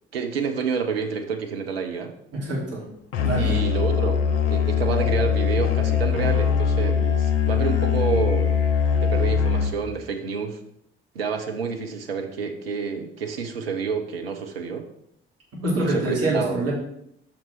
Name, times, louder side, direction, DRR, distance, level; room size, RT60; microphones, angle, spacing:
voice 1, 0.1-2.1 3.4-4.2 4.5-8.6 8.9-10.6 11.1-14.8 15.8-16.6, right 5 dB, 80° right, 4 dB, 0.7 m, -28 dB
voice 2, 2.3-2.8 3.2-3.6 15.6-16.7, right 2 dB, 55° right, -4 dB, 3.1 m, -25 dB
Musical instrument, 3.1-9.9, left 7 dB, 75° left, 0.8 m, -22 dB
7.0 x 5.9 x 4.5 m, 0.74 s
figure-of-eight pair, 45°, 29 cm